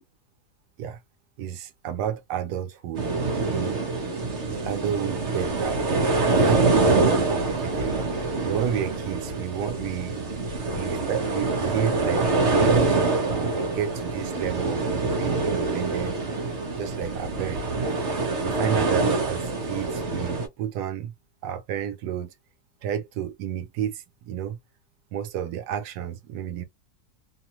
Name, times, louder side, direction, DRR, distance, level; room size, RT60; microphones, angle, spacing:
voice 1, 1.4-3.1 3.5-3.8 4.5-8.0 8.4-10.2 10.7-14.8 15.1-16.2 16.8-18.1 18.4-21.1 21.4-22.3 22.8-24.6 25.1-26.6, right 9 dB, 85° right, 1.2 m, -31 dB
sound 1, 2.9-20.5, right 3 dB, 50° right, 1.2 m, -25 dB
3.0 x 2.1 x 2.9 m
omnidirectional pair, 1.7 m